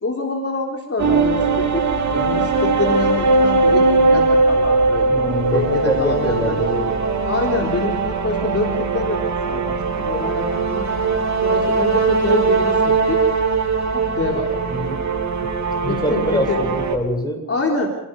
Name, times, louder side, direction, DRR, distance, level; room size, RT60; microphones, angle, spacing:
voice 1, 0.0-1.9 2.1-5.1 5.5-6.6 7.2-9.2 9.5-11.1 11.4-13.2 13.9-14.5 15.8-16.6 17.5-17.9, left 3 dB, 40° left, 0 dB, 3.9 m, -25 dB
sound 1, 1.0-17.0, right 3 dB, 55° right, 3.6 m, -20 dB
voice 2, 5.1-6.9 14.7-15.0 15.4-15.5 15.8-17.4, left 1 dB, 10° left, 3 dB, 7.7 m, -24 dB
29.5 x 18.5 x 5.4 m, 0.90 s
cardioid pair, 95°, 35 cm